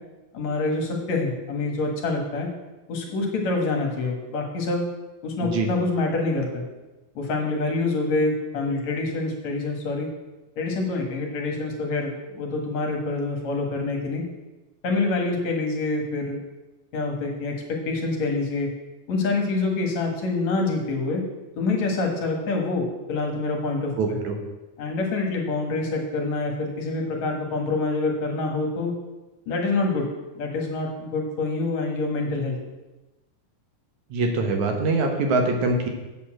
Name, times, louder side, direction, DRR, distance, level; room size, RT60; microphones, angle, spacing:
voice 1, 0.3-2.5 2.9-4.8 5.2-6.6 7.2-10.1 10.6-14.2 14.8-16.4 16.9-18.7 19.1-21.2 21.6-23.9 24.8-28.9 29.5-30.1 30.4-32.6, left 3 dB, 65° left, 1 dB, 2.7 m, -26 dB
voice 2, 24.0-24.4 34.1-35.9, right 3 dB, 70° right, 3 dB, 2.5 m, -23 dB
8.3 x 7.0 x 7.4 m, 1.1 s
omnidirectional pair, 3.6 m